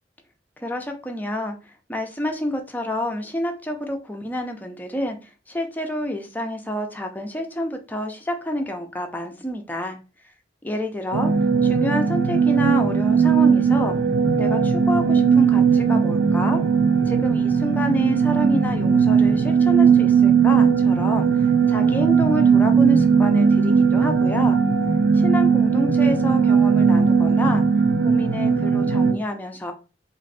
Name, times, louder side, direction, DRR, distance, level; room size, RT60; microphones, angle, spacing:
voice 1, 0.6-10.0 10.6-11.3 11.6-14.0 14.4-16.6 17.1-24.6 25.1-27.6 28.0-29.7, left 1 dB, 10° left, 4 dB, 0.6 m, -28 dB
sound 1, 11.1-29.1, right 6 dB, 85° right, 0.6 m, -18 dB
3.1 x 2.6 x 4.1 m, 0.31 s
head